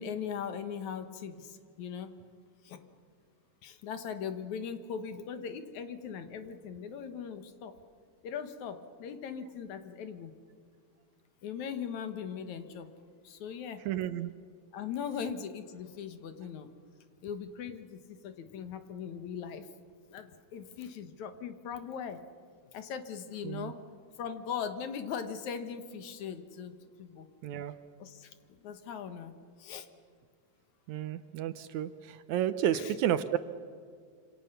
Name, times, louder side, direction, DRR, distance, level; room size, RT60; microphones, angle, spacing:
voice 1, 0.0-2.1 2.6-2.8 3.6-7.7 8.2-10.3 11.4-12.9 13.2-13.8 14.7-16.7 17.2-19.7 20.1-22.2 22.7-23.8 24.2-27.3 28.0-29.9 32.7-32.9, left 7 dB, 65° left, 9 dB, 2.6 m, -40 dB
voice 2, 13.9-14.3 23.4-23.7 27.4-27.7 30.9-33.4, right 11 dB, 75° right, 12 dB, 2.0 m, -31 dB
27.0 x 26.5 x 6.8 m, 2.2 s
omnidirectional pair, 3.7 m